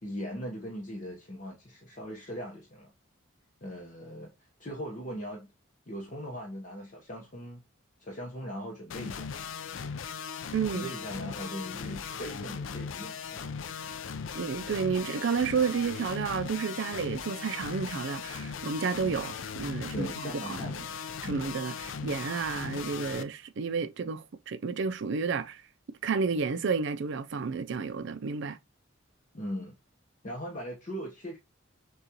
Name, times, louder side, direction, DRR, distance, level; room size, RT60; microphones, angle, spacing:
voice 1, 0.0-2.9 3.6-5.5 5.9-7.6 8.0-9.3 10.7-13.5 19.9-20.8 21.2-21.4 29.3-29.7 30.2-31.4, equal, 40° left, 0.9 m, -39 dB
sound 1, 8.9-23.2, left 6 dB, 65° left, 0.4 m, -38 dB
voice 2, 10.5-10.9 14.3-20.7 21.2-25.6 26.0-28.6, right 5 dB, 60° right, 0.4 m, -31 dB
6.4 x 2.4 x 2.8 m
head